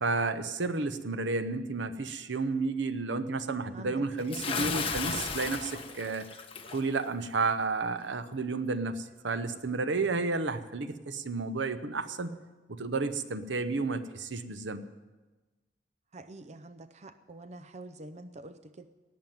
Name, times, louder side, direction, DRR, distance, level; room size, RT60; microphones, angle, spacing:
voice 1, 0.0-6.3 6.7-12.3 12.7-14.9, right 3 dB, 80° right, 11 dB, 0.9 m, -31 dB
Bathtub (filling or washing) / Splash splatter, 4.3-6.8, left 5 dB, 30° left, 1.2 m, -34 dB
voice 2, 16.1-18.9, right 2 dB, 40° right, 11 dB, 0.6 m, -46 dB
18.0 x 7.3 x 9.3 m, 1.2 s
head